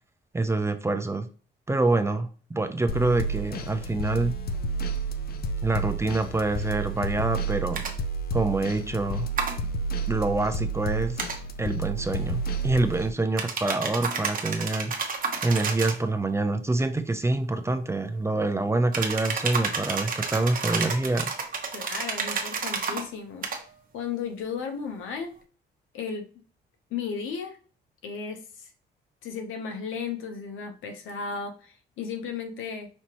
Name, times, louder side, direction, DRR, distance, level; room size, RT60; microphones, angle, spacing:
voice 1, 0.3-1.3 1.7-4.3 5.6-7.8 8.3-9.3 10.1-11.2 11.6-14.9 15.4-21.3, right 2 dB, 15° right, 8 dB, 0.5 m, -26 dB
sound 1, 2.9-13.1, right 3 dB, 50° left, 0.5 m, -31 dB
sound 2, 7.7-7.9 9.4-9.6 11.2-11.4 13.4-16.0 18.9-23.0 23.4-23.6, right 5 dB, 45° right, 0.9 m, -30 dB
voice 2, 21.7-23.5 23.9-25.3 25.9-26.3 26.9-27.6 28.0-28.7 29.2-32.9, left 6 dB, 85° left, 6 dB, 0.8 m, -34 dB
5.4 x 2.9 x 2.9 m, 0.40 s
cardioid pair, 90°, 20 cm